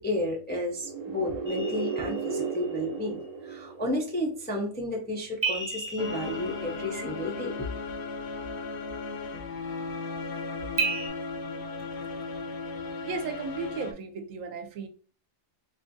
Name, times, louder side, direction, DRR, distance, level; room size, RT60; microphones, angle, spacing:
voice 1, 0.0-7.7, left 1 dB, 15° left, -1 dB, 0.3 m, -32 dB
sound 1, 0.7-4.5, right 5 dB, 60° right, 0.4 m, -35 dB
sound 2, 1.5-2.8 5.4-7.4 10.8-11.1, right 4 dB, 10° right, 0.8 m, -33 dB
sound 3, 6.0-13.9, left 3 dB, 65° left, 0.8 m, -36 dB
voice 2, 13.1-14.9, right 4 dB, 85° right, 7 dB, 1.0 m, -35 dB
4.2 x 2.3 x 2.5 m, 0.40 s
omnidirectional pair, 1.3 m